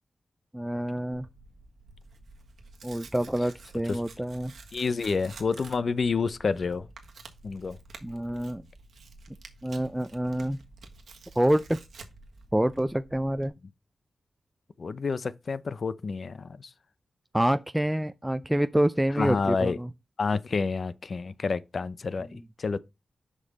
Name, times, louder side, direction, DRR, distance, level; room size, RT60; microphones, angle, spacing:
voice 1, 0.5-1.3 2.8-4.5 8.0-8.6 9.6-10.6 11.4-11.8 12.5-13.5 17.3-19.9, right 1 dB, 10° right, 0.4 m, -27 dB
Tearing, 1.1-13.5, right 3 dB, 85° right, 1.5 m, -50 dB
voice 2, 4.7-6.9 7.4-7.8 14.8-16.7 19.2-19.8 20.2-22.8, left 4 dB, 65° left, 0.6 m, -29 dB
6.5 x 5.3 x 4.0 m
cardioid pair, 60°, 0 cm